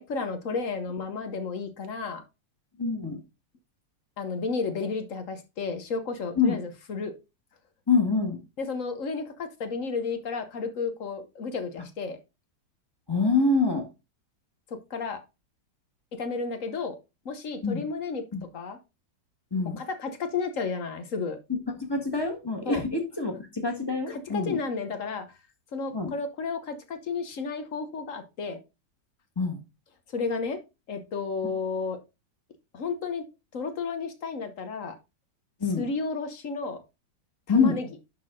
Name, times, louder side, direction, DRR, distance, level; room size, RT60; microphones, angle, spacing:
voice 1, 0.0-2.2 4.2-7.1 8.6-12.2 14.7-15.2 16.1-17.0 17.2-18.2 18.5-18.8 19.8-21.4 22.7-22.8 24.1-25.2 25.7-28.6 30.1-30.6 30.9-32.0 32.7-33.2 33.5-34.9 35.8-36.8 37.5-37.9, left 4 dB, 50° left, 8 dB, 1.2 m, -32 dB
voice 2, 2.8-3.2 6.3-6.6 7.9-8.4 13.1-13.8 17.6-17.8 18.3-18.4 19.5-19.8 21.5-24.6 25.9-26.1 29.4-29.6 35.6-35.8 37.5-37.8, left 4 dB, 15° left, 3 dB, 1.3 m, -25 dB
10.5 x 4.1 x 3.7 m, 0.26 s
omnidirectional pair, 2.0 m